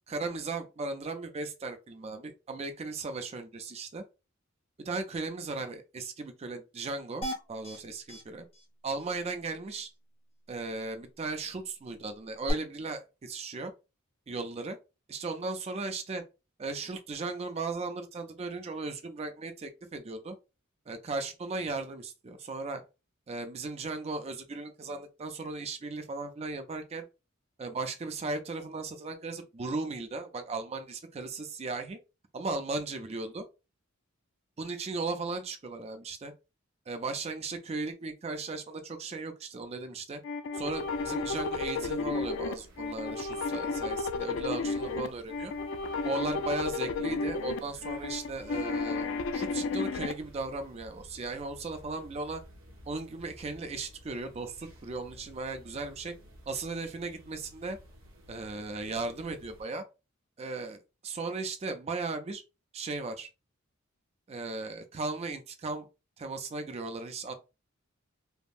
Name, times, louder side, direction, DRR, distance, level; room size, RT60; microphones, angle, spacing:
voice 1, 0.1-4.0 4.8-8.5 8.8-9.9 10.5-13.7 14.3-14.8 15.1-16.2 16.6-20.4 20.9-22.8 23.3-27.0 27.6-32.0 32.3-33.4 34.6-36.3 36.9-40.2 40.5-45.5 46.0-52.4 52.9-56.1 56.5-57.8 58.3-59.8 60.4-62.4 62.7-63.3 64.3-65.9 66.2-67.3, right 3 dB, 30° right, 0.4 m, -36 dB
sound 1, 7.2-7.8 8.1-8.2 8.5-8.6 9.0-9.1 12.5-12.6, equal, 30° left, 0.7 m, -36 dB
sound 2, 40.2-50.1, left 4 dB, 65° left, 0.3 m, -33 dB
sound 3, 40.8-59.6, equal, 70° right, 0.8 m, -54 dB
3.4 x 2.0 x 2.4 m
head